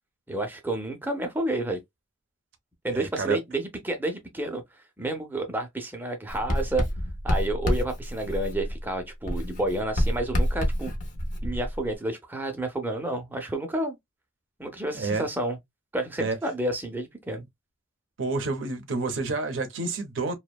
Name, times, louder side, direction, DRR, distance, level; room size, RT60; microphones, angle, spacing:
voice 1, 0.3-1.8 2.8-4.6 5.0-6.8 7.2-10.9 11.4-14.0 14.6-15.6 15.9-17.4, right 1 dB, 10° right, 0.5 m, -30 dB
voice 2, 2.9-3.4 14.9-15.2 16.2-16.4 18.2-20.3, right 3 dB, 70° right, 0.5 m, -29 dB
Writing, 6.3-8.9 9.3-12.0, equal, 40° left, 0.5 m, -28 dB
2.6 x 2.1 x 2.2 m
head